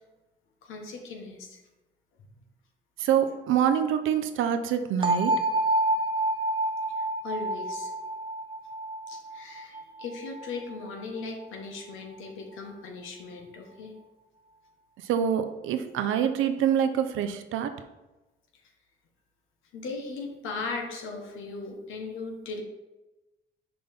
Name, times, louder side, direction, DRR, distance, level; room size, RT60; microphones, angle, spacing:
voice 1, 0.6-1.6 7.0-7.9 9.1-13.9 19.7-22.6, left 3 dB, 85° left, 2 dB, 1.2 m, -38 dB
voice 2, 3.0-5.3 15.0-17.7, right 9 dB, 85° right, 9 dB, 0.6 m, -25 dB
sound 1, 5.0-10.9, right 2 dB, 25° right, 0.5 m, -28 dB
6.0 x 5.2 x 3.5 m, 1.1 s
cardioid pair, 90°, 20 cm